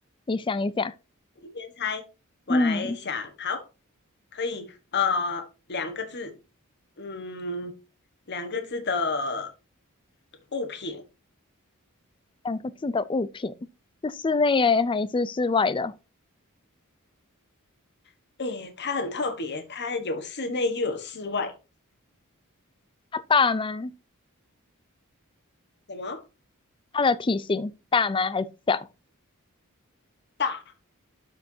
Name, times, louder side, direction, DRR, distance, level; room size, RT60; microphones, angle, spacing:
voice 1, 0.3-0.9 2.5-3.0 12.4-13.5 14.0-15.9 23.1-23.9 26.9-28.9, left 4 dB, 20° left, 0.4 m, -24 dB
voice 2, 1.4-2.0 2.5-3.6 4.3-6.3 7.0-7.7 8.3-9.5 10.5-11.0 18.4-21.5 25.9-26.2 30.4-30.6, left 4 dB, 50° left, 1.3 m, -30 dB
12.5 x 4.6 x 2.7 m
head